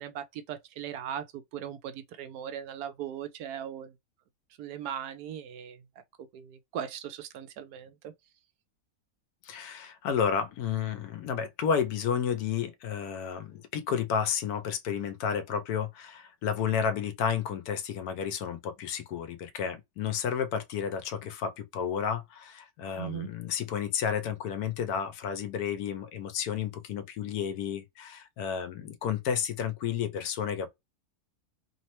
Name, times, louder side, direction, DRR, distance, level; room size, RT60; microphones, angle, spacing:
voice 1, 0.0-3.9 4.6-5.8 6.3-8.1 23.0-23.3, right 9 dB, 85° right, 1.1 m, -39 dB
voice 2, 9.4-30.7, left 7 dB, 85° left, 1.1 m, -31 dB
3.1 x 2.1 x 2.9 m
omnidirectional pair, 1.6 m